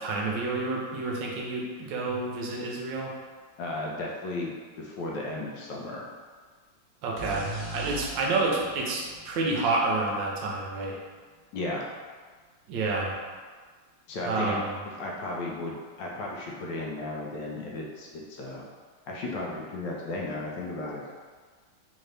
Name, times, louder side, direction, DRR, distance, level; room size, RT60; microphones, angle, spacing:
voice 1, 0.0-3.1 7.0-11.0 12.7-13.2 14.2-14.8, right 3 dB, 75° right, -2 dB, 1.3 m, -29 dB
voice 2, 3.6-6.0 11.5-11.9 14.1-14.6 15.0-18.7 19.1-21.0, left 2 dB, 75° left, -2 dB, 1.2 m, -34 dB
sound 1, 7.2-10.8, right 2 dB, 50° right, 1.2 m, -40 dB
3.8 x 2.7 x 3.2 m, 1.5 s
omnidirectional pair, 2.1 m